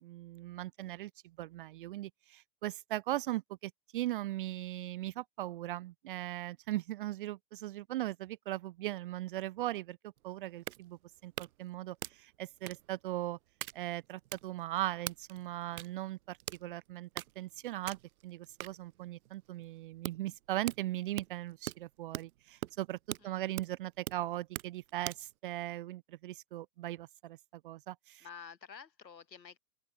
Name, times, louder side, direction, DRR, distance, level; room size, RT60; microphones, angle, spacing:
voice 1, 0.0-10.0 10.2-13.4 13.7-17.1 17.4-18.0 18.2-23.0 23.2-28.2, right 15 dB, 35° right, 0.4 m, -39 dB
sound 1, 10.2-25.3, right 14 dB, 60° right, 1.8 m, -45 dB
voice 2, 28.2-29.6, left 6 dB, 90° left, 4.7 m, -50 dB
open air
hypercardioid pair, 125°, 49 cm